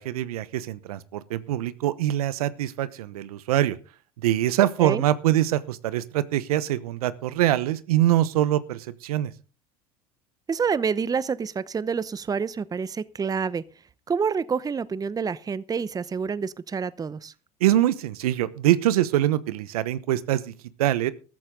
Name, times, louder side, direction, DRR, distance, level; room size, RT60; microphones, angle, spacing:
voice 1, 0.0-3.8 4.2-9.3 17.6-20.5 20.8-21.1, right 13 dB, 80° right, 1.0 m, -24 dB
voice 2, 10.5-13.6 14.1-17.3, right 6 dB, 20° right, 0.7 m, -28 dB
14.0 x 14.0 x 3.8 m
hypercardioid pair, 80°, 19 cm